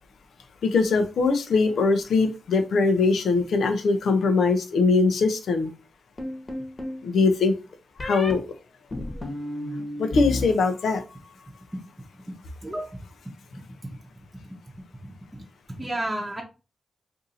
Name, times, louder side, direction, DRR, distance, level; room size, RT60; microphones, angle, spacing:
voice 1, 0.6-5.7 7.0-7.5 8.0-8.4 10.0-11.0, left 4 dB, 80° left, 7 dB, 0.6 m, -21 dB
sound 1, 6.2-7.0 8.0-8.3 8.9-10.4 10.7-11.3, left 1 dB, 35° left, 1.1 m, -32 dB
voice 2, 12.6-13.0 15.0-15.1 15.8-16.4, right 1 dB, 15° right, -1 dB, 0.8 m, -31 dB
2.7 x 2.6 x 4.0 m, 0.31 s
cardioid pair, 60°, 0 cm